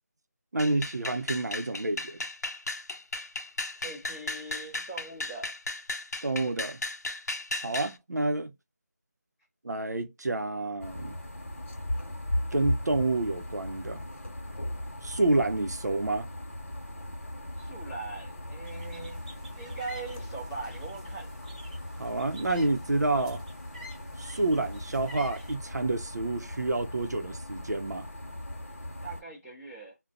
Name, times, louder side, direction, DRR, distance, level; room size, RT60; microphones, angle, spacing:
voice 1, 0.5-2.2 6.2-6.8 7.6-8.5 9.6-11.2 12.5-14.0 15.0-16.3 22.0-23.4 24.2-28.1, right 2 dB, 80° right, 0.6 m, -29 dB
sound 1, 0.6-7.9, left 2 dB, 75° left, 0.6 m, -35 dB
voice 2, 3.8-5.5 17.6-19.3 19.6-21.3 29.0-30.0, right 3 dB, 5° left, 0.4 m, -41 dB
sound 2, 10.8-29.2, left 1 dB, 50° left, 1.0 m, -38 dB
sound 3, 18.6-25.6, equal, 25° right, 0.8 m, -50 dB
2.4 x 2.1 x 2.4 m
figure-of-eight pair, 170°, 9 cm